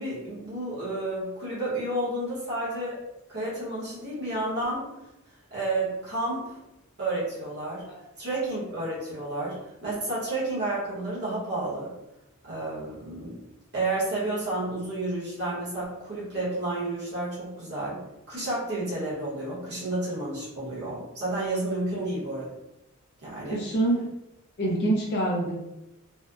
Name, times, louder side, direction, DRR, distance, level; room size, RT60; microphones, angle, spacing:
voice 1, 0.0-3.0 3.3-5.0 5.5-6.6 7.0-7.9 8.2-11.9 12.4-13.4 13.7-22.5 23.2-23.6, right 2 dB, 50° right, -8 dB, 0.8 m, -31 dB
voice 2, 23.5-24.0 24.6-25.5, right 1 dB, 50° left, -3 dB, 0.4 m, -25 dB
2.6 x 2.0 x 2.3 m, 0.90 s
head